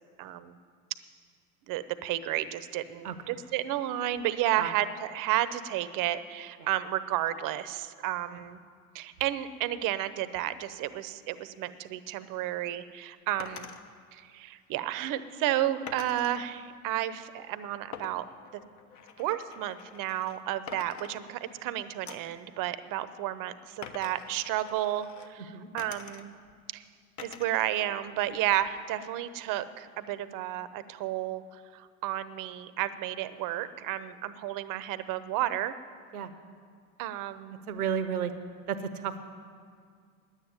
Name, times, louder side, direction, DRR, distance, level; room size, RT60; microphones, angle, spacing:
voice 1, 0.2-0.6 1.7-8.6 8.9-13.7 14.1-18.2 18.5-18.6 19.2-26.3 26.7-26.8 27.2-35.8 37.0-37.6, right 13 dB, 45° right, 14 dB, 0.8 m, -32 dB
sound 1, 13.4-13.8 15.9-16.4 17.9-20.4 20.7-21.6 22.1-22.4 23.8-25.3 25.8-26.5 27.2-27.7 28.1-28.9, left 6 dB, 40° left, 1.0 m, -46 dB
voice 2, 37.7-38.3 38.7-39.3, right 8 dB, 90° right, 11 dB, 0.9 m, -32 dB
9.9 x 9.0 x 9.5 m, 2.1 s
hypercardioid pair, 85°, 43 cm